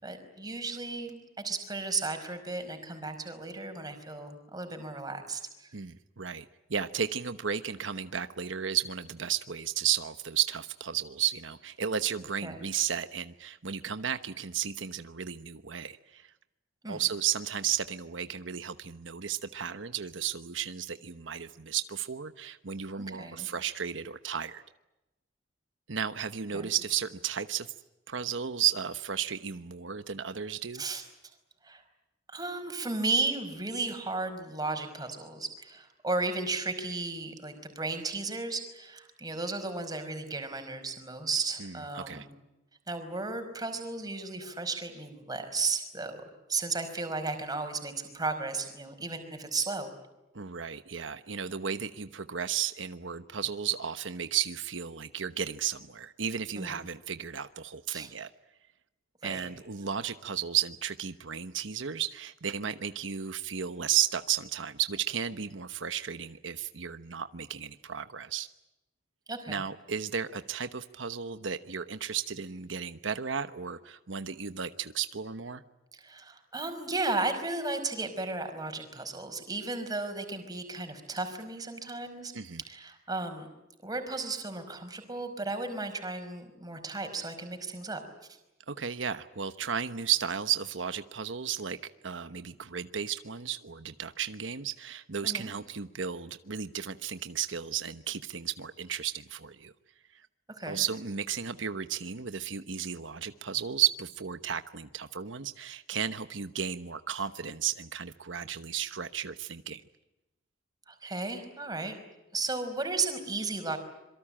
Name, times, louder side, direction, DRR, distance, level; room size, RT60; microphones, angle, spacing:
voice 1, 0.0-1.2 1.4-5.7 12.4-12.7 16.8-17.0 23.0-23.5 26.5-26.7 30.7-31.0 31.6-31.8 32.3-42.3 42.9-46.2 46.5-49.9 56.5-56.8 57.9-58.1 59.2-59.5 69.3-69.6 75.9-82.3 82.6-83.5 83.8-88.0 95.2-95.5 100.5-100.8 110.9-111.9 112.3-113.8, right 3 dB, 20° right, 6 dB, 5.2 m, -34 dB
voice 2, 5.7-6.4 6.7-16.3 16.9-24.6 25.9-27.7 28.1-30.8 41.6-42.2 50.3-58.3 59.2-68.5 69.5-75.6 82.3-82.6 88.7-91.8 92.0-99.7 100.7-109.8, right 8 dB, 85° right, 11 dB, 1.1 m, -33 dB
26.5 x 23.5 x 8.8 m, 0.95 s
head